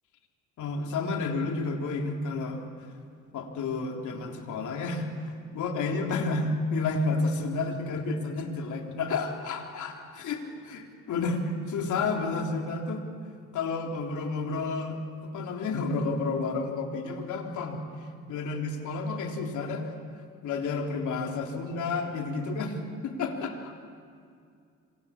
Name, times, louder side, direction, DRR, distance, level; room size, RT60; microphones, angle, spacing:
voice 1, 0.6-2.6 3.3-5.1 5.5-10.4 11.1-13.0 13.5-17.8 18.3-19.9 20.4-23.7, left 3 dB, 75° left, 2 dB, 3.7 m, -30 dB
26.5 x 25.5 x 8.7 m, 2.3 s
cardioid pair, 90°, 30 cm